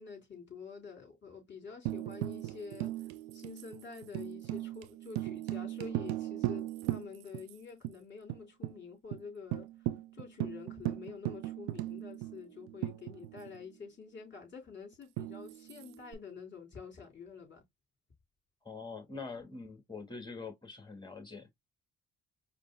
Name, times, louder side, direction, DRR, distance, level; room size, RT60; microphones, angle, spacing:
voice 1, 0.0-2.9 3.3-9.7 10.1-17.6, left 5 dB, 35° left, 3.5 m, -48 dB
Tambourine, 1.9-7.5 7.8-7.9 8.3-8.8 9.1-9.2 9.5-13.6 15.2-16.1, right 16 dB, 90° right, 0.5 m, -38 dB
voice 2, 18.6-21.5, left 4 dB, 15° left, 2.5 m, -44 dB
5.0 x 2.0 x 3.7 m
supercardioid pair, 60°, 34 cm